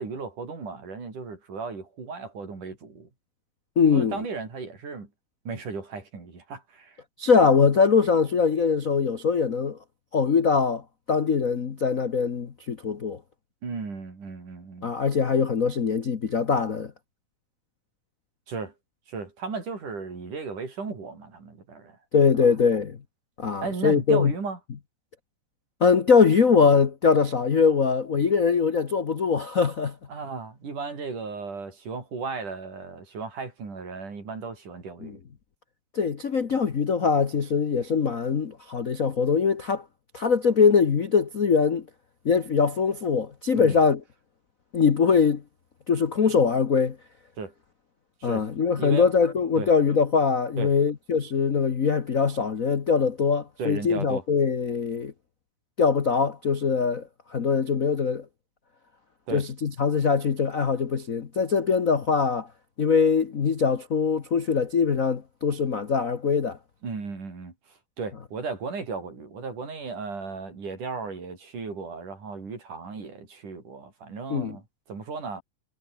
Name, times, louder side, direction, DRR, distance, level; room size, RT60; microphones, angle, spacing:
voice 1, 0.0-3.1 3.9-5.1 5.5-7.0 13.6-14.9 18.5-18.7 19.1-22.0 22.3-22.5 23.6-24.6 30.1-35.2 43.5-43.8 47.4-47.5 48.2-48.5 48.8-49.1 49.6-49.7 50.6-50.7 53.6-54.2 59.3-59.4 66.8-75.4, right 4 dB, 85° right, 7.3 m, -35 dB
voice 2, 3.8-4.2 7.2-9.8 10.1-10.8 11.1-13.2 14.8-16.9 22.1-23.0 23.4-24.3 25.8-30.0 35.0-35.1 35.9-39.8 40.1-41.8 42.2-44.0 44.7-45.4 45.9-47.0 48.2-55.1 55.8-58.2 59.3-62.5 62.8-66.6 74.3-74.6, left 5 dB, 70° left, 0.8 m, -22 dB
omnidirectional pair, 3.5 m